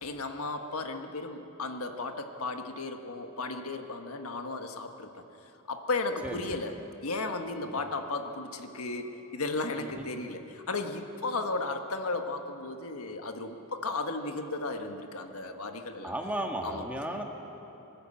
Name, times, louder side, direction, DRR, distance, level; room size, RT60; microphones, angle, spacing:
voice 1, 0.0-5.1 5.7-6.7 7.0-16.1 16.6-16.8, left 3 dB, 85° left, 5 dB, 1.5 m, -35 dB
voice 2, 6.2-6.6 7.6-7.8 9.8-10.1 16.0-17.2, right 1 dB, 5° right, 1 dB, 1.7 m, -35 dB
24.0 x 13.5 x 8.6 m, 3.0 s
head